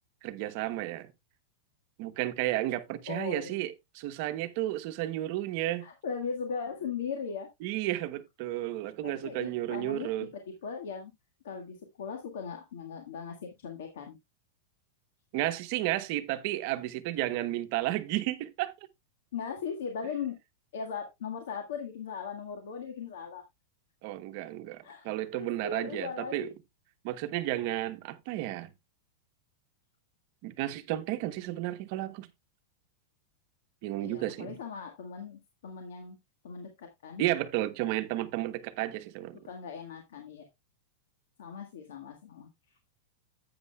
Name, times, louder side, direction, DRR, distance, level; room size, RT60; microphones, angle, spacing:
voice 1, 0.2-1.1 2.0-5.9 7.6-10.3 15.3-18.7 24.0-26.5 27.0-28.7 30.4-32.3 33.8-34.6 37.2-39.4, right 15 dB, 45° right, 0.8 m, -32 dB
voice 2, 3.1-3.5 5.8-7.5 9.0-10.3 10.6-11.1 11.4-14.2 19.3-20.3 20.7-23.4 24.8-25.1 25.3-26.5 34.0-36.2 36.4-37.2 39.4-40.4 41.4-42.8, left 6 dB, 80° left, 1.7 m, -38 dB
11.0 x 8.6 x 2.3 m
supercardioid pair, 165°, 0 cm